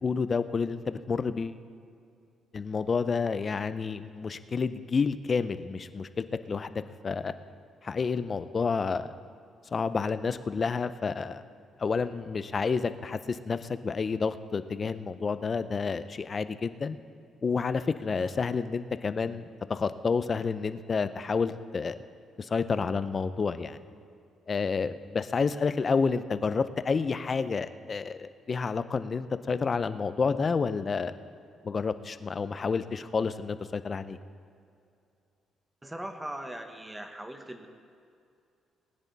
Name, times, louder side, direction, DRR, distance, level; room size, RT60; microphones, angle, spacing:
voice 1, 0.0-1.6 2.5-7.3 7.8-9.1 9.7-11.4 11.8-17.0 17.4-19.4 19.7-22.0 22.4-23.8 24.5-31.1 31.6-34.2, left 5 dB, 40° left, 12 dB, 0.6 m, -29 dB
voice 2, 35.8-37.7, right 1 dB, 10° right, 6 dB, 1.3 m, -40 dB
20.5 x 9.7 x 4.1 m, 2.5 s
cardioid pair, 90°, 0 cm